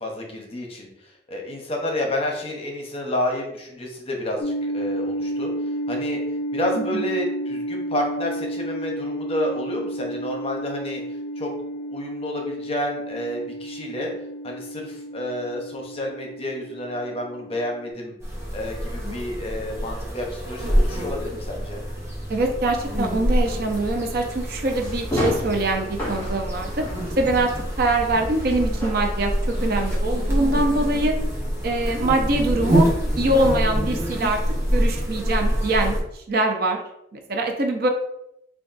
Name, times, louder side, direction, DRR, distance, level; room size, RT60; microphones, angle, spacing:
voice 1, 0.0-0.9 1.3-5.5 5.9-6.2 6.5-11.0 11.4-11.5 11.9-14.1 14.4-18.1 18.5-21.8 31.8-32.2, left 1 dB, 35° left, 1 dB, 0.7 m, -30 dB
sound 1, 4.4-17.9, right 1 dB, 70° left, 0.4 m, -31 dB
sound 2, 18.2-36.0, equal, 15° right, 1.0 m, -26 dB
voice 2, 22.3-26.7 27.2-27.5 27.8-31.1 31.6-32.9 33.2-34.4 34.7-36.0 36.3-36.8 37.1-37.9, right 2 dB, 55° right, 3 dB, 0.6 m, -23 dB
sound 3, 24.8-30.0, left 1 dB, 15° left, 1.4 m, -31 dB
3.4 x 2.3 x 3.9 m, 0.80 s
head